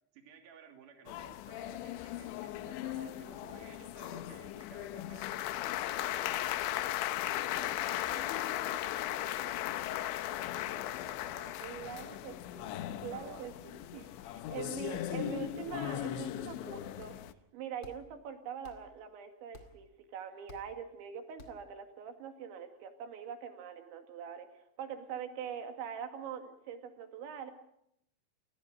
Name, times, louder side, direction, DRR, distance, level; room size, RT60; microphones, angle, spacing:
voice 1, 0.1-7.0 7.3-12.2 12.6-13.4 14.9-15.0, right 7 dB, 50° right, 4 dB, 3.9 m, -55 dB
sound 1, 1.1-17.3, left 14 dB, 80° left, 3.2 m, -37 dB
voice 2, 11.6-12.8 13.0-17.2 17.5-27.5, right 8 dB, 75° right, 6 dB, 4.4 m, -43 dB
sound 2, 14.0-14.2 14.9-15.4 15.7-16.4 17.0-17.4 17.8-18.3 18.6-19.1 19.5-20.0 20.5-21.0 21.4-21.8, left 3 dB, 40° left, 1.8 m, -58 dB
29.5 x 20.0 x 5.2 m, 0.78 s
omnidirectional pair, 5.4 m